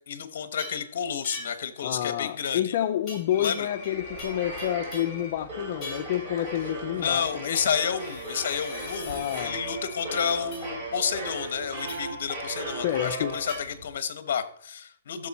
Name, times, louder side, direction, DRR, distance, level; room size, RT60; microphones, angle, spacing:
voice 1, 0.1-2.7 3.4-3.7 6.9-15.3, left 7 dB, 55° left, 1.1 m, -30 dB
sound 1, 0.6-0.9 1.2-1.7 3.1-3.9 4.2-5.2 5.8-6.2 7.9-9.5 10.5-10.7 11.9-12.2 13.5-13.6, left 2 dB, 5° left, 4.7 m, -42 dB
voice 2, 1.8-7.6 9.0-9.6 12.8-13.4, left 12 dB, 40° left, 0.4 m, -29 dB
sound 2, 3.3-4.8 5.1-5.3 8.4-10.3, left 5 dB, 20° left, 2.8 m, -44 dB
sound 3, 3.4-13.9, right 2 dB, 30° right, 3.2 m, -37 dB
13.5 x 6.6 x 4.2 m
hypercardioid pair, 170°, 0 cm